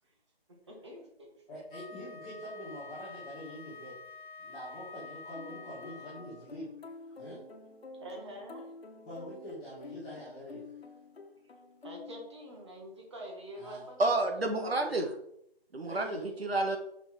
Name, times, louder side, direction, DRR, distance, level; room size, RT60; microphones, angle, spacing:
voice 1, 0.7-1.3 8.0-8.7 11.8-14.3 14.6-15.0, right 1 dB, 25° right, -1 dB, 1.7 m, -45 dB
voice 2, 1.5-4.0 4.4-6.7 7.1-7.4 9.0-10.9 13.5-13.8 15.8-16.3, equal, 5° left, -13 dB, 1.1 m, -45 dB
Wind instrument woodwind instrument, 1.7-6.6, left 4 dB, 55° left, 0.6 m, -48 dB
sound 1, 5.3-12.8, left 4 dB, 75° left, 1.3 m, -49 dB
voice 3, 14.0-15.1 15.7-16.8, right 2 dB, 70° right, 5 dB, 1.4 m, -29 dB
6.0 x 5.4 x 4.4 m, 0.74 s
figure-of-eight pair, 170°, 31 cm